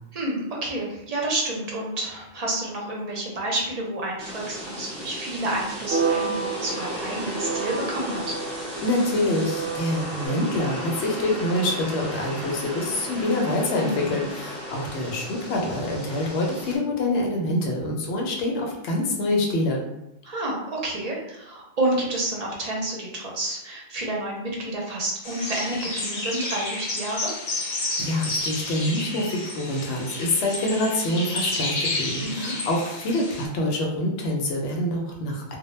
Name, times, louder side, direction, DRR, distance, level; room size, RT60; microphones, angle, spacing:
voice 1, 0.1-8.4 13.8-14.3 20.2-27.3 32.2-32.5, right 1 dB, 45° right, -2 dB, 0.5 m, -29 dB
sound 1, 4.2-16.8, equal, 5° left, 0.8 m, -35 dB
sound 2, 5.9-10.3, right 5 dB, 90° right, 0.9 m, -30 dB
voice 2, 8.8-19.8 28.0-35.6, left 1 dB, 80° left, 0 dB, 0.9 m, -26 dB
sound 3, 25.2-33.4, left 2 dB, 50° left, 0.7 m, -31 dB
2.1 x 2.0 x 3.1 m, 0.89 s
omnidirectional pair, 1.1 m